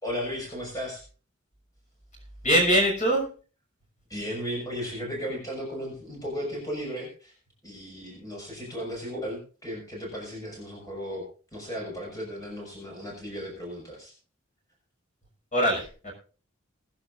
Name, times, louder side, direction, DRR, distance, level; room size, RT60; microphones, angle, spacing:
voice 1, 0.0-1.0 4.1-7.3 7.6-14.1, equal, 15° left, -2 dB, 5.8 m, -35 dB
voice 2, 2.4-3.3 15.5-16.1, equal, 35° left, 0 dB, 6.2 m, -22 dB
22.0 x 10.5 x 2.6 m, 0.36 s
head